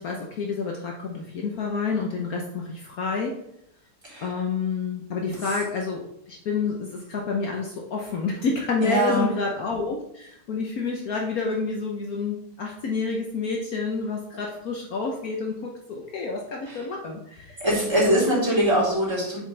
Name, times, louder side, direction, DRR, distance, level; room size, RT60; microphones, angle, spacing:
voice 1, 0.0-3.4 4.2-17.6 17.9-18.3, left 4 dB, 60° left, 0 dB, 1.3 m, -29 dB
voice 2, 8.8-9.3 16.7-16.8 17.6-19.4, equal, 15° right, -8 dB, 3.5 m, -22 dB
7.8 x 6.8 x 3.3 m, 0.77 s
omnidirectional pair, 1.8 m